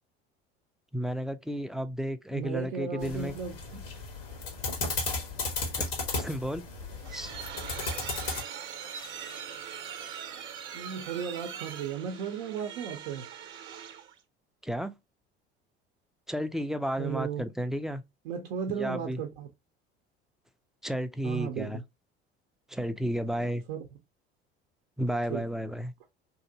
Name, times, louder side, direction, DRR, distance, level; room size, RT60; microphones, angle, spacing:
voice 1, 0.9-3.3 6.1-6.6 7.1-7.3 14.6-14.9 16.3-18.0 18.7-19.2 20.8-21.8 22.7-23.6 25.0-25.9, equal, ahead, 0.3 m, -32 dB
voice 2, 2.3-3.8 10.7-13.3 17.0-17.5 18.2-19.5 21.2-21.8 23.7-23.8 25.3-25.4, right 7 dB, 75° right, 0.6 m, -35 dB
sound 1, 3.0-8.4, left 3 dB, 85° left, 1.1 m, -34 dB
sound 2, 6.7-14.2, right 8 dB, 45° right, 0.8 m, -41 dB
2.8 x 2.8 x 2.6 m
hypercardioid pair, 65°, 29 cm